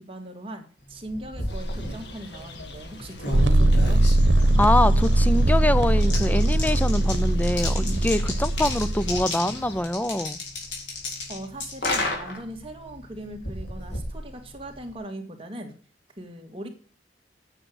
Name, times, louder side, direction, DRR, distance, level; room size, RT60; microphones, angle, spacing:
voice 1, 0.0-4.0 11.3-15.7 16.2-16.7, right 1 dB, 30° right, 2.0 m, -39 dB
sound 1, 0.9-15.0, left 2 dB, 90° left, 3.9 m, -34 dB
sound 2, 1.5-9.8, left 1 dB, 65° left, 1.8 m, -41 dB
sound 3, 3.3-9.2, right 1 dB, 85° right, 1.1 m, -20 dB
voice 2, 4.6-10.4, left 1 dB, 10° left, 0.5 m, -24 dB
8.9 x 6.5 x 6.3 m
head